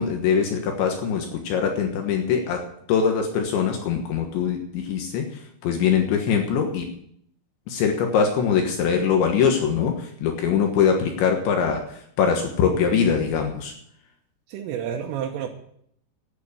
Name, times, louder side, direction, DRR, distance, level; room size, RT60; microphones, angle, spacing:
voice 1, 0.0-6.9 7.7-13.7, left 7 dB, 70° left, 3 dB, 3.5 m, -23 dB
voice 2, 14.5-15.5, right 9 dB, 85° right, 0 dB, 3.7 m, -30 dB
12.0 x 9.4 x 8.4 m, 0.68 s
omnidirectional pair, 5.7 m